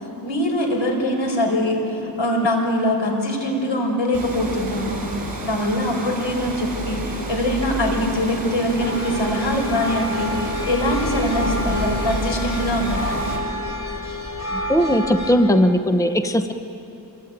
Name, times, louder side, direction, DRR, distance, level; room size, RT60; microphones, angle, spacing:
voice 1, 0.2-5.2 5.4-13.4, left 1 dB, 80° left, 2 dB, 5.0 m, -23 dB
Water, 4.1-13.4, right 2 dB, 50° right, 5.5 m, -30 dB
sound 1, 8.8-15.3, left 1 dB, 35° left, 4.1 m, -29 dB
voice 2, 14.5-16.5, equal, 5° left, 8 dB, 0.9 m, -18 dB
27.0 x 22.5 x 9.0 m, 3.0 s
wide cardioid pair, 110°, 44 cm